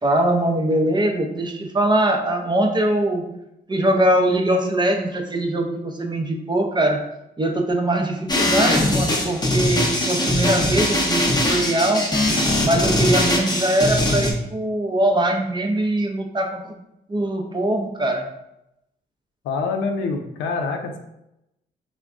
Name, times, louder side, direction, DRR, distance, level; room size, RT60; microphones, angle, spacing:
voice 1, 0.0-3.2 3.7-7.0 7.4-12.0 12.6-16.6 17.1-18.3, right 1 dB, 20° right, 3 dB, 0.5 m, -22 dB
sound 1, 8.3-14.3, left 1 dB, 20° left, 0.7 m, -21 dB
voice 2, 19.4-21.0, left 4 dB, 80° left, 4 dB, 0.5 m, -25 dB
3.3 x 2.1 x 2.4 m, 0.85 s
supercardioid pair, 60°, 20 cm